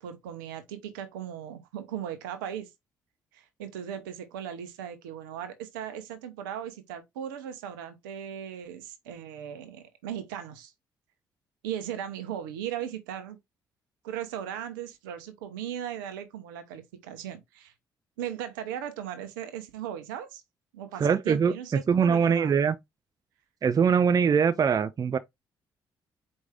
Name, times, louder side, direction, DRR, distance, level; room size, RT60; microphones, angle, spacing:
voice 1, 0.0-2.7 3.3-10.7 11.6-13.4 14.0-17.7 18.2-20.4 20.7-22.6, right 9 dB, 80° right, 0.7 m, -37 dB
voice 2, 21.0-22.7 23.6-25.2, right 6 dB, 35° right, 0.4 m, -23 dB
4.7 x 2.6 x 3.4 m
hypercardioid pair, 45°, 11 cm